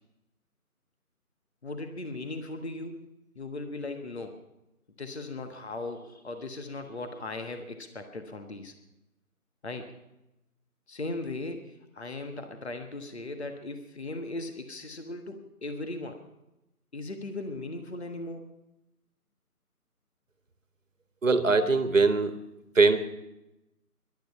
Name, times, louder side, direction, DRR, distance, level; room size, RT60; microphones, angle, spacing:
voice 1, 1.6-3.1 3.3-4.4 5.0-8.7 9.6-9.9 10.9-16.2 16.9-18.5, left 2 dB, 45° left, 6 dB, 1.5 m, -38 dB
voice 2, 21.2-22.3 22.7-23.0, right 3 dB, 55° right, 10 dB, 1.5 m, -21 dB
18.5 x 12.0 x 5.6 m, 0.91 s
figure-of-eight pair, 175°, 46 cm